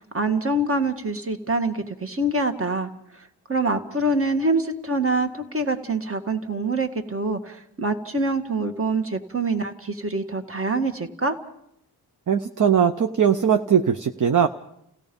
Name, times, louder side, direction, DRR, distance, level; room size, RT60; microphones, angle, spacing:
voice 1, 0.0-2.9 3.5-11.4, right 2 dB, 35° right, 7 dB, 1.8 m, -25 dB
voice 2, 12.3-14.5, right 8 dB, 50° right, 8 dB, 0.8 m, -20 dB
30.0 x 16.5 x 5.3 m, 0.75 s
wide cardioid pair, 90°, 38 cm